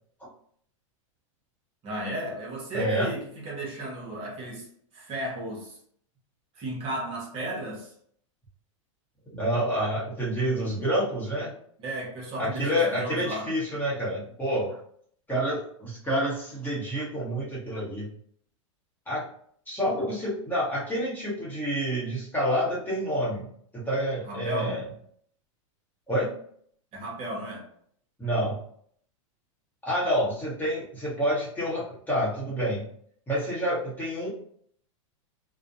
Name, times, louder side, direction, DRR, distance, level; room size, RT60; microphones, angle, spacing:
voice 1, 1.8-4.7 4.9-5.8 6.5-7.9 11.8-13.5 24.2-24.8 26.9-27.7, right 1 dB, 35° right, -2 dB, 0.9 m, -34 dB
voice 2, 2.7-3.1 9.3-11.5 12.4-14.8 15.3-18.1 19.1-19.2 19.7-23.5 23.7-24.8 26.1-26.3 28.2-28.6 29.8-32.8 33.3-34.3, equal, 10° left, -6 dB, 0.9 m, -28 dB
2.5 x 2.1 x 2.6 m, 0.62 s
hypercardioid pair, 130°, 17 cm